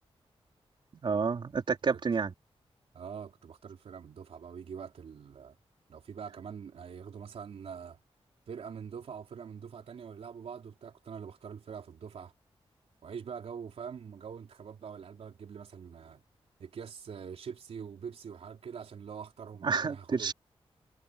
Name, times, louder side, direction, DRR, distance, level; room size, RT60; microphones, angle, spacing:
voice 1, 0.9-2.3 19.6-20.3, right 5 dB, 50° right, 4.3 m, -29 dB
voice 2, 2.9-5.6 5.9-8.0 8.5-12.3 13.0-16.2 16.6-20.3, right 7 dB, 80° right, 3.8 m, -44 dB
wide cardioid pair, 155°, 10 cm